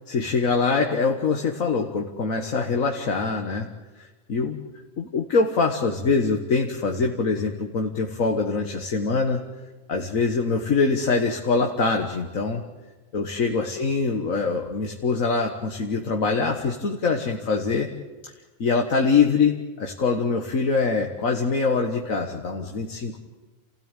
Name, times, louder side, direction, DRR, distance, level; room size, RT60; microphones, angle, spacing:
voice 1, 0.1-3.7 4.0-4.6 5.0-9.4 9.9-12.6 13.1-17.9 18.6-23.2, left 4 dB, 80° left, 2 dB, 1.9 m, -24 dB
28.5 x 16.5 x 9.1 m, 1.2 s
omnidirectional pair, 1.4 m